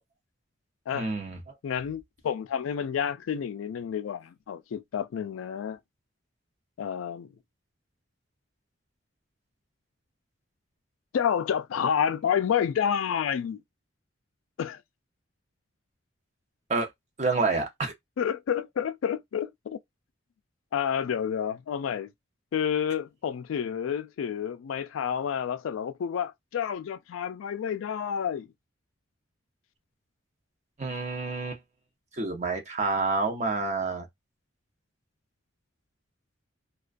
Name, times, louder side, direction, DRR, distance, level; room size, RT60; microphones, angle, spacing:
voice 1, 0.9-1.5 16.7-16.9 17.2-17.9 30.8-31.6 32.1-34.1, right 3 dB, 35° right, 0.7 m, -28 dB
voice 2, 1.6-5.8 6.8-7.3 11.1-13.6 14.6-14.8 18.2-19.8 20.7-22.1 22.5-28.5, left 8 dB, 85° left, 0.3 m, -29 dB
2.3 x 2.2 x 2.4 m
head